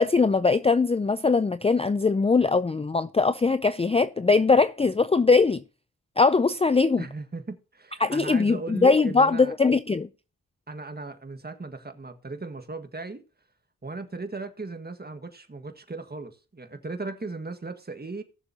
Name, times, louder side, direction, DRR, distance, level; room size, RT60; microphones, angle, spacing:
voice 1, 0.0-5.6 6.2-7.0 8.0-10.1, left 4 dB, 15° left, 0.4 m, -21 dB
voice 2, 7.0-9.5 10.7-13.2 13.8-18.2, right 3 dB, 25° right, 1.6 m, -37 dB
19.0 x 6.9 x 2.8 m
cardioid pair, 75°, 35 cm